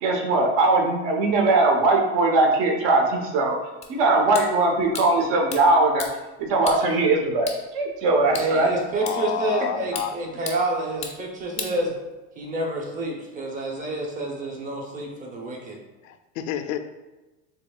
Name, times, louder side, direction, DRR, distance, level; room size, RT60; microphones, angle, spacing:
voice 1, 0.0-3.6 3.9-6.0 6.4-8.7 11.6-11.8, right 2 dB, 60° right, 1 dB, 1.1 m, -20 dB
sound 1, 3.8-12.4, left 5 dB, 15° left, 0.5 m, -40 dB
voice 2, 8.4-11.9 12.4-15.8, right 2 dB, 20° right, -1 dB, 0.8 m, -28 dB
voice 3, 9.0-10.1 16.0-16.8, left 9 dB, 85° left, 8 dB, 0.6 m, -29 dB
7.1 x 3.0 x 2.4 m, 1.1 s
cardioid pair, 155°, 38 cm